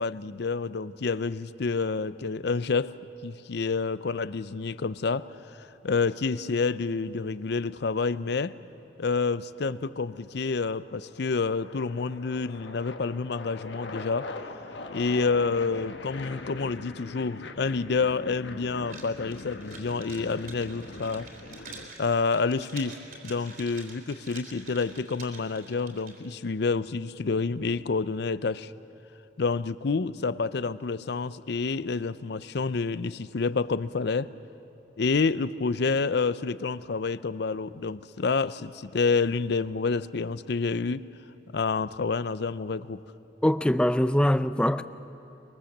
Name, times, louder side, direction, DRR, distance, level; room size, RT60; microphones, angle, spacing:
voice 1, 0.0-3.0 3.2-8.6 9.0-14.3 14.9-21.3 21.6-21.7 22.0-23.0 23.2-28.7 29.4-34.3 35.0-41.0 41.5-43.0, left 4 dB, 65° left, 0.6 m, -28 dB
sound 1, 4.0-5.1 7.0-8.2 9.2-9.6 10.0-21.9, left 2 dB, 85° left, 1.3 m, -42 dB
sound 2, 18.9-26.4, right 4 dB, 55° right, 3.7 m, -47 dB
voice 2, 43.4-44.8, equal, 5° left, 0.5 m, -23 dB
23.5 x 22.5 x 7.3 m
head